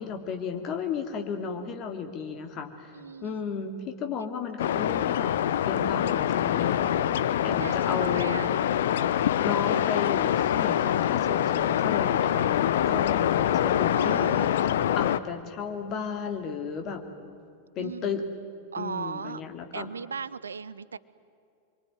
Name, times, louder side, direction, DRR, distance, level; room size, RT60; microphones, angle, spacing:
voice 1, 0.0-2.9 3.2-5.3 5.6-6.9 7.4-8.4 9.4-14.5 14.9-17.0 17.7-18.2 18.8-19.9, left 6 dB, 35° left, 5 dB, 2.8 m, -34 dB
voice 2, 2.9-3.3 7.6-8.6 13.9-14.6 17.8-18.2 18.7-19.4 19.7-21.0, right 6 dB, 70° right, 18 dB, 0.6 m, -37 dB
sound 1, 4.6-15.2, left 10 dB, 60° left, 0.8 m, -25 dB
26.0 x 23.5 x 9.4 m, 2.5 s
figure-of-eight pair, 90°, 0 cm